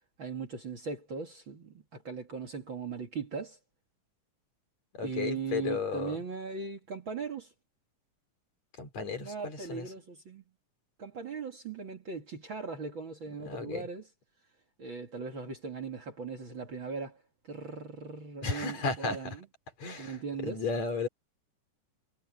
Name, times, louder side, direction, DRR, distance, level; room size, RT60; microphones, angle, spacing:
voice 1, 0.2-3.6 5.0-7.5 9.2-10.4 11.0-14.1 14.8-17.2 17.5-19.5 20.0-20.6, right 5 dB, 40° right, 2.7 m, -39 dB
voice 2, 4.9-6.2 8.8-9.3 9.7-9.8 13.4-13.8 18.4-19.3 19.8-20.2 20.4-21.1, left 4 dB, 55° left, 5.1 m, -34 dB
omnidirectional pair, 3.8 m